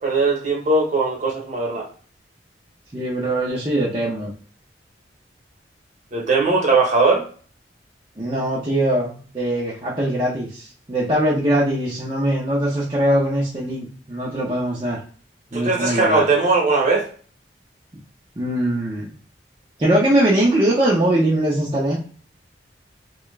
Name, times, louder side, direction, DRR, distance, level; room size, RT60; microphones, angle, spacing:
voice 1, 0.0-1.9 6.1-7.3 15.5-17.1, right 3 dB, 45° right, -1 dB, 1.1 m, -19 dB
voice 2, 2.9-4.3 8.2-15.0 15.5-16.2 18.4-19.1 19.8-22.0, right 1 dB, 25° right, -7 dB, 0.7 m, -21 dB
2.9 x 2.3 x 3.2 m, 0.43 s
head